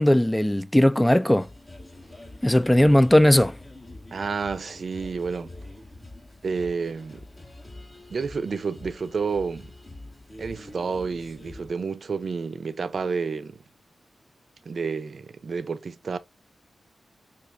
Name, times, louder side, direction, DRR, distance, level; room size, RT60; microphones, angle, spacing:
voice 1, 0.0-1.5 2.4-3.6, left 1 dB, 10° left, 0.3 m, -18 dB
sound 1, 1.3-11.7, left 2 dB, 30° left, 1.4 m, -45 dB
voice 2, 4.1-5.5 6.4-7.3 8.1-9.7 10.4-13.6 14.7-16.2, right 5 dB, 65° right, 0.5 m, -30 dB
5.8 x 2.4 x 2.5 m
cardioid pair, 55°, 0 cm